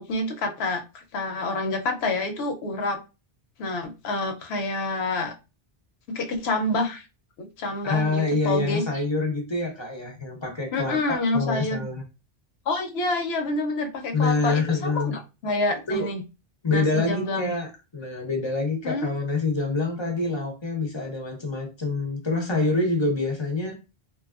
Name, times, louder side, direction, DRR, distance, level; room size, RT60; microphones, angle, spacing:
voice 1, 0.0-3.0 3.6-5.3 6.1-7.0 7.4-8.8 10.7-11.9 12.7-16.2 16.7-17.5 18.8-19.1, left 2 dB, 85° left, 0.9 m, -28 dB
voice 2, 7.8-12.0 14.1-15.1 15.9-16.1 16.6-23.8, left 3 dB, 40° left, 0.4 m, -26 dB
2.7 x 2.3 x 2.3 m
omnidirectional pair, 1.0 m